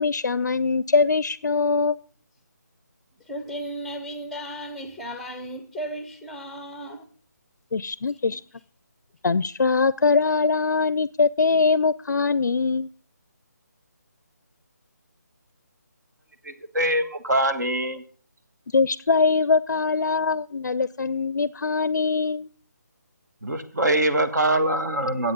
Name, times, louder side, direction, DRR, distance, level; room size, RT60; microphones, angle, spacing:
voice 1, 0.0-2.0 7.7-8.4 9.2-12.9 18.7-22.5, left 4 dB, 85° left, 0.4 m, -22 dB
voice 2, 3.3-7.1 8.3-8.4, right 1 dB, ahead, 0.6 m, -35 dB
voice 3, 16.4-18.0 23.4-25.3, right 1 dB, 75° right, 1.5 m, -23 dB
9.9 x 8.2 x 5.3 m
figure-of-eight pair, 160°, 10 cm